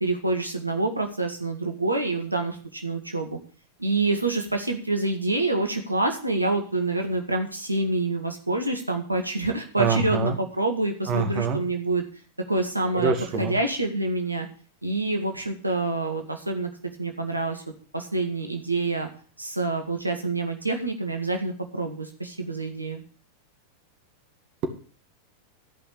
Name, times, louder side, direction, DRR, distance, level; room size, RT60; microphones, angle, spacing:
voice 1, 0.0-3.4 3.8-12.0 12.5-14.5 14.8-16.7 17.0-17.6 17.9-19.1 19.4-23.0, right 2 dB, 85° right, 4 dB, 1.7 m, -27 dB
voice 2, 9.8-10.4 11.1-11.6 12.9-13.5, right 4 dB, 40° right, 5 dB, 2.3 m, -25 dB
14.0 x 5.6 x 8.6 m, 0.40 s
figure-of-eight pair, 90°, 0 cm